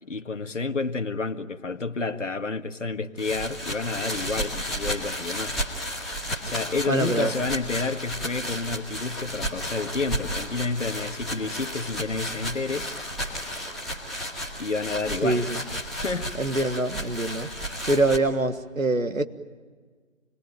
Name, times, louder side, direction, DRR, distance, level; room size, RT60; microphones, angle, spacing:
voice 1, 0.0-5.6 5.8-6.1 6.4-12.9 14.6-15.5 16.0-16.3, left 3 dB, 65° left, 7 dB, 1.7 m, -30 dB
sound 1, 3.2-18.2, equal, ahead, 2.3 m, -33 dB
voice 2, 6.9-7.3 15.2-15.6 16.4-17.5 17.9-19.2, right 2 dB, 85° right, 9 dB, 1.6 m, -24 dB
27.5 x 22.0 x 9.2 m, 1.5 s
figure-of-eight pair, 145°, 39 cm